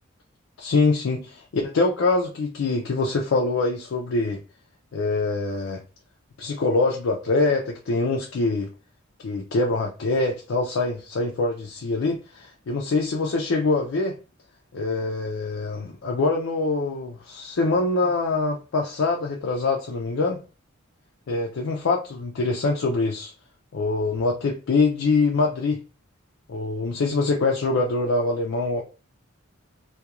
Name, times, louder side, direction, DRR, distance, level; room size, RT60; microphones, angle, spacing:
voice 1, 0.6-4.4 4.9-5.8 6.4-8.7 9.2-14.2 14.7-20.4 21.3-23.3 23.7-25.8 26.5-28.8, left 3 dB, 65° left, 0.4 m, -24 dB
2.3 x 2.2 x 2.9 m
head